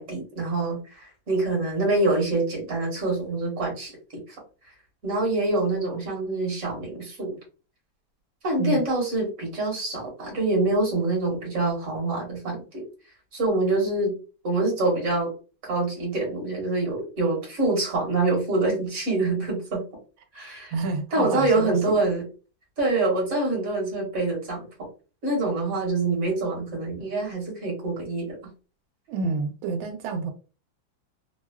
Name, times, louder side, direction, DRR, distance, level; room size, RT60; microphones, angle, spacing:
voice 1, 0.0-4.3 5.0-7.4 8.4-12.8 13.3-14.1 14.4-15.3 15.6-19.8 20.3-20.7 21.1-22.3 22.8-24.9 25.2-28.4, right 2 dB, 45° right, -2 dB, 1.5 m, -25 dB
voice 2, 20.7-22.0 29.1-30.3, right 4 dB, 90° right, 5 dB, 1.4 m, -29 dB
3.4 x 2.2 x 2.2 m, 0.35 s
omnidirectional pair, 2.1 m